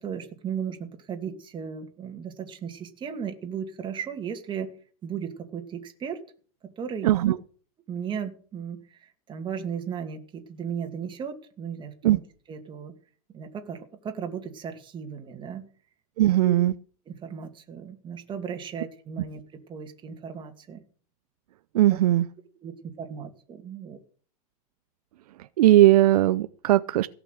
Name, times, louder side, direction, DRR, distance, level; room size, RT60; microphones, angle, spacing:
voice 1, 0.0-4.7 5.0-6.2 6.6-7.1 7.9-12.2 12.5-12.9 13.3-15.7 16.4-16.5 17.1-19.4 19.7-20.8 21.9-22.0 22.6-24.0, right 7 dB, 25° right, 2.4 m, -36 dB
voice 2, 7.0-7.4 12.0-12.2 16.2-16.7 21.7-22.3 25.6-27.1, right 14 dB, 75° right, 0.6 m, -19 dB
17.0 x 6.1 x 7.9 m
supercardioid pair, 130°, 19 cm